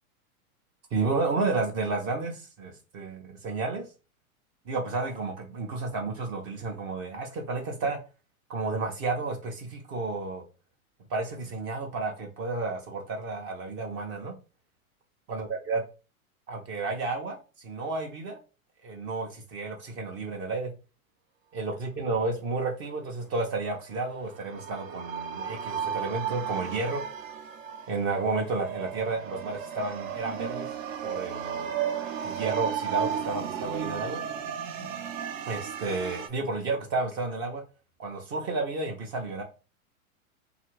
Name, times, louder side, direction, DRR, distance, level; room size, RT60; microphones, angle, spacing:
voice 1, 0.9-3.8 4.7-8.0 8.5-10.4 11.1-14.3 15.3-15.8 16.5-18.4 18.8-20.7 21.5-27.0 27.9-30.7 31.0-31.7 32.2-34.2 35.5-37.6 38.0-39.4, right 3 dB, 30° right, 0.5 m, -31 dB
sound 1, 23.9-36.3, right 8 dB, 65° right, 0.7 m, -34 dB
2.8 x 2.4 x 2.9 m
hypercardioid pair, 105°, 43 cm